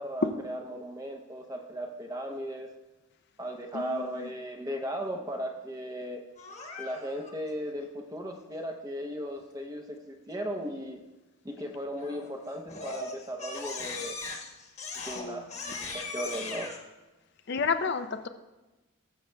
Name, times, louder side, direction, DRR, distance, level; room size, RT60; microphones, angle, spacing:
voice 1, 0.0-2.7 3.4-6.2 6.8-11.0 11.4-14.2 15.1-16.7, equal, 15° right, 4 dB, 0.7 m, -36 dB
voice 2, 3.7-4.3 15.0-15.5 17.5-18.3, left 5 dB, 50° left, 8 dB, 0.4 m, -32 dB
Crying sobbing, 6.4-7.3 12.0-12.3 12.7-16.8, left 3 dB, 30° left, 1.2 m, -39 dB
19.5 x 7.0 x 2.2 m, 1.1 s
head